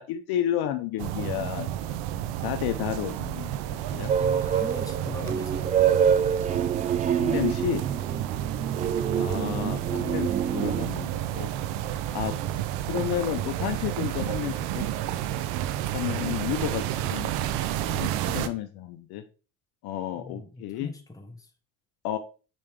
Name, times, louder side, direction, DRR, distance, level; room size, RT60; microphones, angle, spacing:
voice 1, 0.0-2.0 2.4-4.1 7.2-7.8 9.2-11.5 12.1-12.4 12.9-14.9 15.9-17.3 17.9-19.2 19.8-20.9 22.0-22.2, left 12 dB, 65° left, 8 dB, 0.8 m, -31 dB
sound 1, 1.0-18.5, right 12 dB, 75° right, 0.7 m, -31 dB
sound 2, 4.1-10.9, right 8 dB, 20° right, 0.3 m, -26 dB
voice 2, 4.2-5.7 20.1-21.5, left 2 dB, 10° left, 4 dB, 1.2 m, -40 dB
5.3 x 5.0 x 3.6 m, 0.35 s
supercardioid pair, 75°, 40 cm